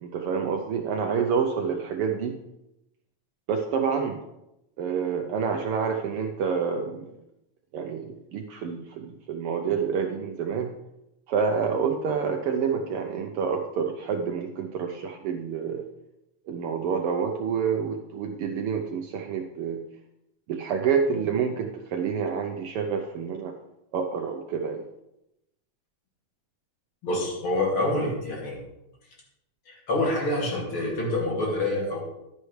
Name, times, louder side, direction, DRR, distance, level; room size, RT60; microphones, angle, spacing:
voice 1, 0.0-2.4 3.5-4.2 4.8-7.2 7.7-10.7 11.3-15.9 16.5-19.8 20.5-23.5 23.9-24.8, right 6 dB, 80° right, 4 dB, 1.2 m, -28 dB
voice 2, 27.0-28.6 29.7-32.0, left 2 dB, 45° left, -3 dB, 3.2 m, -27 dB
11.0 x 9.7 x 3.2 m, 0.87 s
omnidirectional pair, 3.3 m